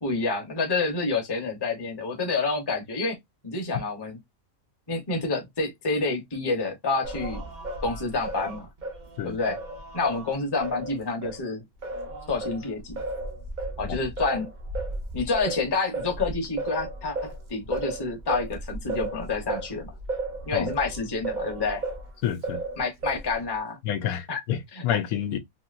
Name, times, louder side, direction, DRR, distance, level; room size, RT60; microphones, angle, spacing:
voice 1, 0.0-3.2 3.4-4.2 4.9-7.4 7.8-8.7 9.2-9.6 9.9-11.6 12.3-13.0 13.8-14.5 15.1-19.9 20.5-21.8 22.8-23.8 24.3-24.4 24.7-25.0, left 3 dB, 20° left, 0.7 m, -28 dB
Singing, 7.0-11.4 11.8-22.1 22.4-23.4, right 2 dB, 45° right, 0.6 m, -34 dB
voice 2, 22.2-22.6 23.8-24.6 24.8-25.4, left 10 dB, 90° left, 1.1 m, -28 dB
2.9 x 2.7 x 2.4 m
omnidirectional pair, 1.5 m